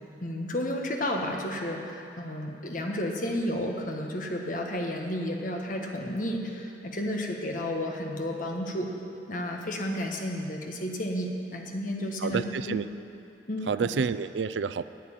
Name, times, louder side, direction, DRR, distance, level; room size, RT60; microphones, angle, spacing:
voice 1, 0.2-8.9 9.3-12.8 13.5-13.9, left 1 dB, 45° left, 1 dB, 1.4 m, -32 dB
voice 2, 12.2-12.9 13.7-14.8, right 5 dB, 85° right, 13 dB, 0.4 m, -29 dB
10.5 x 9.3 x 8.9 m, 2.6 s
head